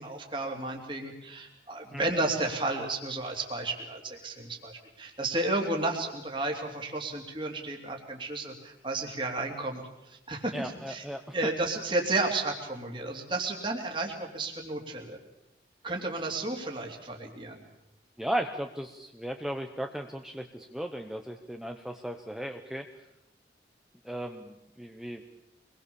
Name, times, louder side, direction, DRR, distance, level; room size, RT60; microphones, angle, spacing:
voice 1, 0.0-11.0 11.3-15.2 15.8-17.6, right 2 dB, 30° right, 1 dB, 3.1 m, -32 dB
voice 2, 10.5-11.4 18.2-22.9 24.0-25.2, right 1 dB, ahead, 4 dB, 1.0 m, -36 dB
25.5 x 21.0 x 7.1 m, 0.88 s
head